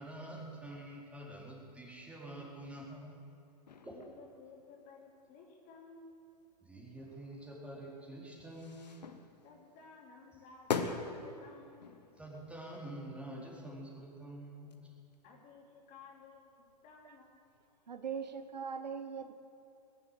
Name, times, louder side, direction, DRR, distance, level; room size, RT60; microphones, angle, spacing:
voice 1, 0.0-3.2 3.8-4.0 6.6-8.9 12.2-14.7, right 1 dB, 5° right, -5 dB, 4.2 m, -47 dB
sound 1, 3.7-5.8 6.2-6.6 7.0-15.7 16.0-18.6, left 5 dB, 80° left, 1.3 m, -44 dB
voice 2, 3.8-6.1 9.4-12.0 15.2-17.5, left 4 dB, 40° left, 0 dB, 3.1 m, -56 dB
voice 3, 17.9-19.3, right 6 dB, 85° right, 10 dB, 1.0 m, -40 dB
20.0 x 7.7 x 8.2 m, 2.6 s
hypercardioid pair, 110°, 21 cm